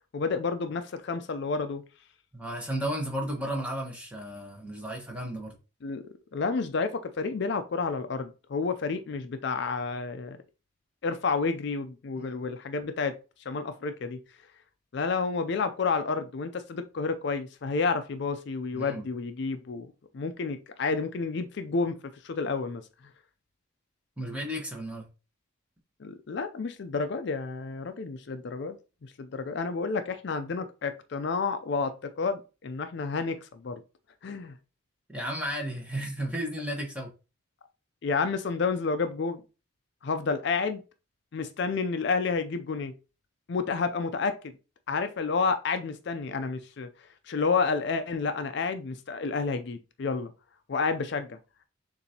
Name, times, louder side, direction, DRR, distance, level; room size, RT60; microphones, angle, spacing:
voice 1, 0.1-1.8 5.8-6.0 6.3-10.4 11.0-13.1 13.5-14.2 14.9-22.0 22.2-22.8 26.0-28.8 29.0-33.8 34.2-34.5 38.0-39.4 40.0-40.8 41.3-42.9 43.5-44.4 44.9-46.9 47.3-50.3 50.7-51.4, left 4 dB, 55° left, 0.4 m, -30 dB
voice 2, 2.3-5.5 12.2-12.3 18.7-19.0 24.2-25.1 35.1-37.1, right 1 dB, 5° right, 1.1 m, -33 dB
6.8 x 2.6 x 2.8 m
head